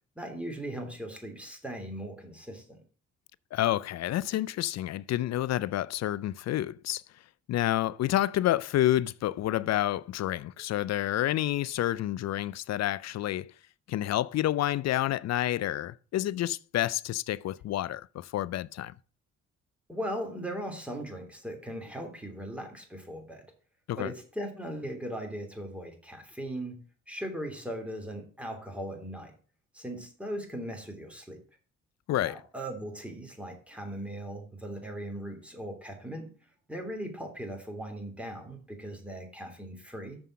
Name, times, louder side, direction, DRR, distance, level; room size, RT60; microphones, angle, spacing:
voice 1, 0.1-2.8 19.9-23.5 24.0-29.3 29.7-31.4 32.2-36.3 36.7-40.2, right 1 dB, 5° right, 3.0 m, -38 dB
voice 2, 3.5-7.0 7.5-13.5 13.9-18.9 23.9-24.1 32.1-32.4, left 13 dB, 60° left, 0.5 m, -29 dB
6.9 x 5.5 x 7.3 m
cardioid pair, 90°, 30 cm